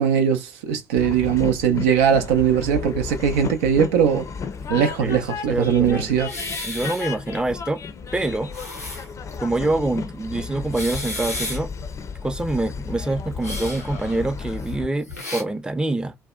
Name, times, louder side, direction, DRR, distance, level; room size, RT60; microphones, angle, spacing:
voice 1, 0.0-4.3 4.7-6.3, right 8 dB, 70° right, 0.4 m, -20 dB
Train, 1.0-14.9, left 5 dB, 40° left, 0.5 m, -33 dB
voice 2, 5.5-6.2 6.6-7.8 8.1-8.5 9.4-11.7 12.2-16.2, right 2 dB, 10° right, 0.5 m, -25 dB
sound 1, 6.2-7.3 7.7-7.8 8.3-9.4 9.8-9.9 10.6-11.8 13.4-15.4, left 2 dB, 90° left, 0.5 m, -33 dB
2.6 x 2.1 x 2.3 m
figure-of-eight pair, 45°, 8 cm